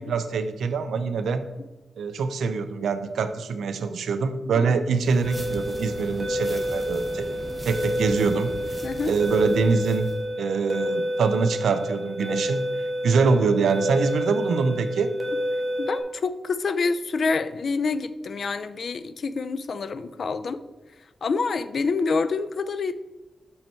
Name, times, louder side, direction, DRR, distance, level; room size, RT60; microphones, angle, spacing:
voice 1, 0.0-1.4 2.0-7.4 7.6-8.5 9.0-10.1 10.4-12.6 13.0-15.1, right 5 dB, 90° right, 11 dB, 0.5 m, -24 dB
sound 1, 4.9-10.2, right 1 dB, 15° right, 0.9 m, -39 dB
sound 2, 5.2-16.0, equal, 30° right, 1.2 m, -29 dB
voice 2, 8.8-9.1 15.8-20.6 21.2-22.9, left 4 dB, 60° left, 13 dB, 0.4 m, -27 dB
6.3 x 5.7 x 4.4 m, 1.1 s
wide cardioid pair, 105°, 0 cm